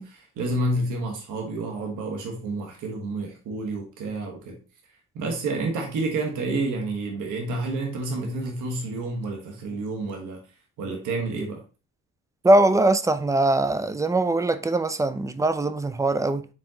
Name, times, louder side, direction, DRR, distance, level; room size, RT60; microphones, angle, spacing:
voice 1, 0.0-4.6 5.1-10.4 10.8-11.6, right 2 dB, 80° right, 1.3 m, -29 dB
voice 2, 12.4-16.5, right 2 dB, 10° right, 0.4 m, -21 dB
5.2 x 3.6 x 2.8 m
cardioid pair, 90°, 30 cm